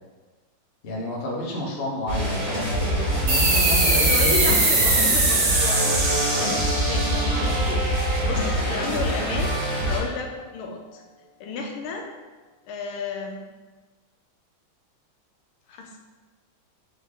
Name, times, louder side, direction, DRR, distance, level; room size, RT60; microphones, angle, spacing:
voice 1, 0.8-4.1 4.5-5.0, left 1 dB, 50° left, -3 dB, 0.7 m, -30 dB
sound 1, 2.1-10.0, right 1 dB, 35° right, 1.2 m, -25 dB
sound 2, 3.3-8.4, right 2 dB, 80° right, 1.9 m, -22 dB
voice 2, 3.9-6.0 6.4-7.9 8.3-9.6 9.9-11.0 11.4-12.1 12.6-13.4 15.7-16.0, left 4 dB, 90° left, 2 dB, 1.5 m, -32 dB
sound 3, 5.6-10.6, right 1 dB, 20° right, 0.8 m, -35 dB
4.0 x 3.4 x 3.6 m, 1.3 s
omnidirectional pair, 2.2 m